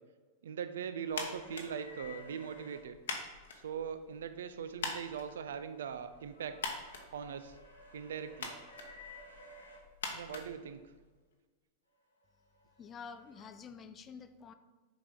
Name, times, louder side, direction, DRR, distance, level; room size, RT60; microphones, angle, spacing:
voice 1, 0.4-3.0 3.6-6.6 7.1-7.6 7.9-8.5 10.0-10.8, right 7 dB, 60° right, 10 dB, 0.5 m, -41 dB
sound 1, 1.0-2.8 5.2-9.8 12.2-13.5, left 1 dB, 80° left, 1.3 m, -55 dB
sound 2, 1.1-11.3, left 4 dB, 65° left, 1.0 m, -45 dB
voice 2, 12.8-14.5, left 6 dB, 25° left, 10 dB, 0.4 m, -48 dB
7.1 x 4.8 x 3.8 m, 1.3 s
figure-of-eight pair, 90°, 0 cm